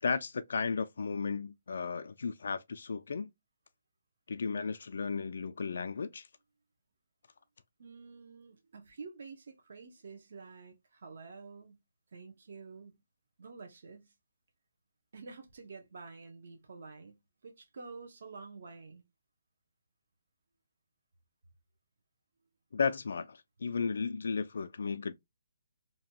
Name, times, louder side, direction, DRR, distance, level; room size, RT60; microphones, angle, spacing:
voice 1, 0.0-3.3 4.3-6.3 22.7-25.1, left 5 dB, 70° left, 0.3 m, -34 dB
voice 2, 7.8-11.8 12.1-13.0 13.4-14.1 15.1-19.0, right 4 dB, 60° right, 0.8 m, -49 dB
2.7 x 2.2 x 2.8 m
hypercardioid pair, 165°, 0 cm